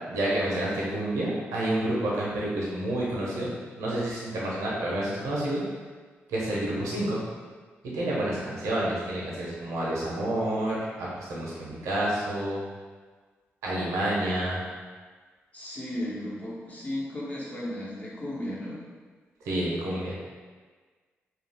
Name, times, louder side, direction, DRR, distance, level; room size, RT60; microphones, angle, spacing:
voice 1, 0.1-5.6 6.3-7.2 7.8-12.6 13.6-14.6 19.4-20.2, right 1 dB, 85° right, -6 dB, 0.7 m, -29 dB
voice 2, 15.5-18.8, left 1 dB, 30° left, -6 dB, 1.0 m, -35 dB
2.4 x 2.2 x 3.3 m, 1.4 s
supercardioid pair, 50°, 5 cm